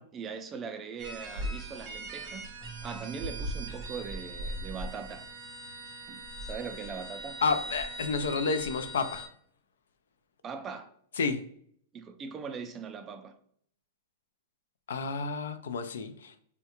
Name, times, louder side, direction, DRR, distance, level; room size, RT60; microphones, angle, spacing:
voice 1, 0.0-2.6 2.8-5.3 6.1-7.4 10.4-10.9 11.9-13.4, right 6 dB, 20° right, 0.3 m, -40 dB
sound 1, 1.0-9.3, right 1 dB, 40° right, 0.7 m, -40 dB
Keyboard (musical), 2.6-5.7, right 10 dB, 70° left, 1.0 m, -50 dB
voice 2, 7.4-9.3 11.2-11.4 14.9-16.4, left 4 dB, 90° left, 0.4 m, -30 dB
3.5 x 2.2 x 2.8 m
supercardioid pair, 145°, 0 cm